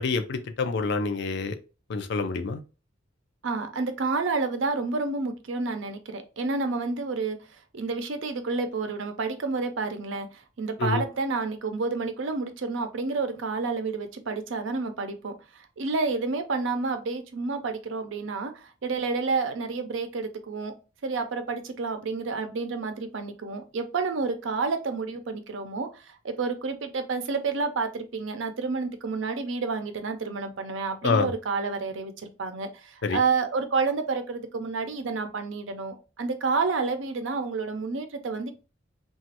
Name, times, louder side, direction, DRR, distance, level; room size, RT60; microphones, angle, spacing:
voice 1, 0.0-1.6 1.9-2.6 10.8-11.0 31.0-31.3 33.0-33.2, left 4 dB, 65° left, 0.4 m, -27 dB
voice 2, 3.4-7.4 7.7-20.7 21.0-38.5, right 4 dB, 80° right, 0.5 m, -29 dB
3.0 x 2.3 x 2.8 m
head